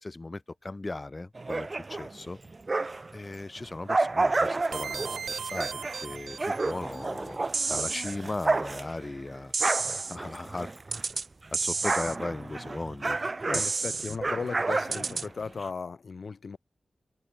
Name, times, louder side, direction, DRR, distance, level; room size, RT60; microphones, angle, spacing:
voice 1, 0.0-2.4 3.1-5.2 5.4-7.4 7.7-9.5 10.1-10.7 11.5-13.2 13.5-13.6 14.1-14.2, left 2 dB, 20° left, 2.9 m, -37 dB
sound 1, 1.3-3.2 3.6-11.2 11.4-15.7, right 3 dB, 25° right, 2.6 m, -31 dB
sound 2, 4.7-7.0, right 6 dB, 70° right, 1.3 m, -37 dB
sound 3, 7.5-8.2 9.5-10.2 10.9-11.3 11.5-12.2 13.5-14.2 14.9-15.3, right 4 dB, 45° right, 0.5 m, -30 dB
voice 2, 13.5-16.6, left 4 dB, 50° left, 3.0 m, -36 dB
wide cardioid pair, 180°, 0 cm